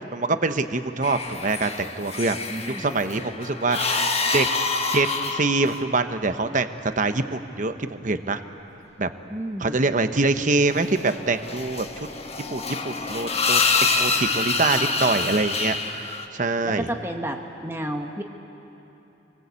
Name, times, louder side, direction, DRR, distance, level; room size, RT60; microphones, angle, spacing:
voice 1, 0.1-2.4 2.8-4.0 4.3-4.5 4.9-6.7 7.0-8.4 9.0-9.1 9.6-11.9 12.5-13.6 14.0-16.9, right 3 dB, 45° right, 9 dB, 1.0 m, -24 dB
sound 1, 1.0-6.0 10.8-16.3, left 4 dB, 35° left, 1.3 m, -26 dB
voice 2, 2.5-3.0 9.3-9.8 14.6-15.2 16.6-18.2, right 1 dB, 15° right, 3 dB, 1.3 m, -32 dB
27.0 x 20.5 x 8.3 m, 2.9 s
head